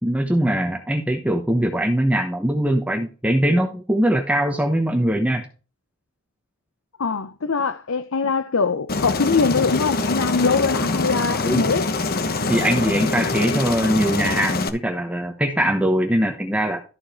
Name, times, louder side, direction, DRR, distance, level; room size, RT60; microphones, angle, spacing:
voice 1, 0.0-5.4 11.4-11.8 12.5-16.8, right 1 dB, 5° right, 1.1 m, -21 dB
voice 2, 7.0-11.9, left 4 dB, 70° left, 0.7 m, -22 dB
Aircraft, 8.9-14.7, left 3 dB, 45° left, 1.1 m, -24 dB
13.5 x 5.0 x 4.4 m
head